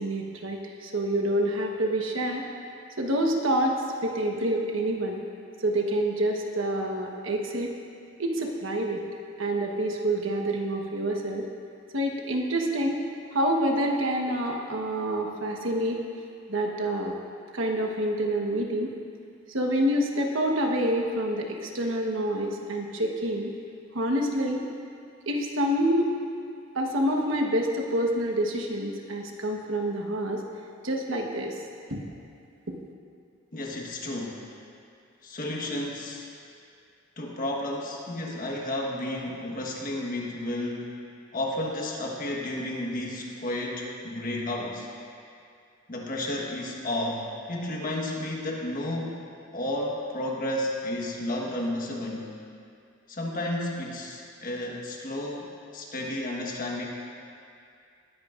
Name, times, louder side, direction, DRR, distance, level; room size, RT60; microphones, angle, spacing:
voice 1, 0.0-2.5 3.0-5.2 5.6-7.7 8.2-9.0 9.4-11.5 11.9-13.0 13.3-16.0 16.5-17.2 17.5-18.9 19.5-23.5 23.9-24.6 25.3-26.1 26.7-30.4 30.8-31.6 31.9-32.0 32.7-32.8, right 1 dB, 85° right, 1 dB, 1.2 m, -27 dB
voice 2, 33.5-34.4 35.2-36.3 37.2-40.9 41.3-44.9 45.9-49.3 49.5-52.3 53.1-56.9, left 1 dB, 45° left, -1 dB, 1.3 m, -32 dB
19.5 x 10.5 x 2.5 m, 2.4 s
head